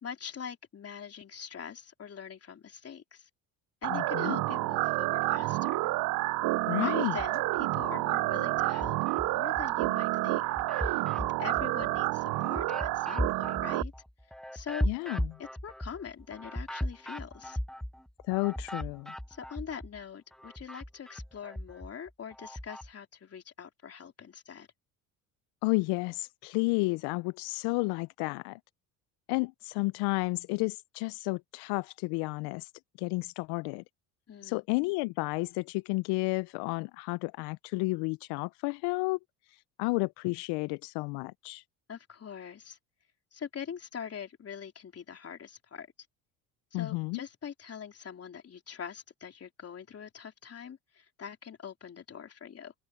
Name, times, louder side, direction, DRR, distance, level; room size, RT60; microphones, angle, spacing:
voice 1, 0.0-3.3 3.8-5.8 6.8-10.4 10.7-13.9 14.5-14.9 15.4-17.6 19.3-24.7 34.3-34.6 41.9-42.8 43.3-45.9 46.7-52.7, left 7 dB, 40° left, 3.6 m, -43 dB
sound 1, 3.8-13.8, right 20 dB, 60° right, 0.5 m, -29 dB
voice 2, 3.9-4.4 6.7-7.2 14.8-15.4 18.2-19.1 25.6-28.6 29.3-32.7 33.0-33.8 34.4-39.2 39.5-41.6 46.7-47.2, left 25 dB, 75° left, 0.5 m, -32 dB
sound 2, 7.1-7.9 8.3-9.9 10.3-20.0 20.3-22.9, equal, ahead, 0.9 m, -38 dB
supercardioid pair, 90°, 39 cm